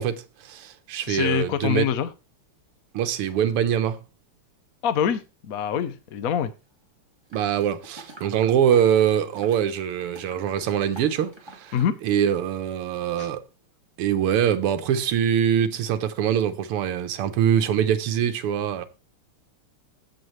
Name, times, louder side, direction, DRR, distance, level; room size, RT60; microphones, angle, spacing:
voice 1, 0.0-1.9 2.9-4.0 7.3-11.8 12.0-13.4 14.0-18.8, right 9 dB, 85° right, 1.9 m, -23 dB
voice 2, 1.1-2.1 4.8-6.5 11.7-12.0 13.2-13.3, left 8 dB, 60° left, 0.9 m, -25 dB
sound 1, 7.3-12.0 12.3-12.4, right 1 dB, 10° right, 2.0 m, -47 dB
15.5 x 6.4 x 3.2 m
omnidirectional pair, 2.4 m